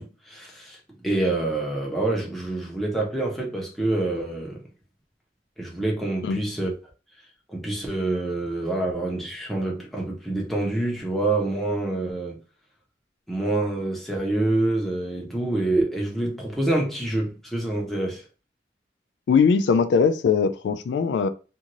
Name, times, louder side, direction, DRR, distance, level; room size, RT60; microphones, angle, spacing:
voice 1, 0.0-4.6 5.6-6.7 7.5-12.4 13.3-18.2, right 2 dB, ahead, 0.8 m, -26 dB
voice 2, 19.3-21.3, left 5 dB, 80° left, 0.3 m, -20 dB
2.6 x 2.4 x 3.0 m
head